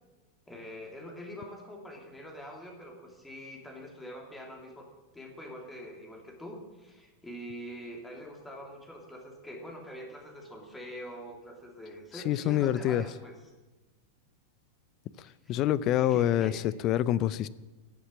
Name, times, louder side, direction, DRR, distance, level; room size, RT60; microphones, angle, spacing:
voice 1, 0.5-4.9 5.1-13.4 15.2-15.6 16.0-16.6, equal, 10° left, 1 dB, 3.0 m, -44 dB
voice 2, 12.1-13.0 15.2-17.5, left 12 dB, 35° left, 19 dB, 0.5 m, -27 dB
14.0 x 7.2 x 8.6 m, 1.2 s
figure-of-eight pair, 90°, 0 cm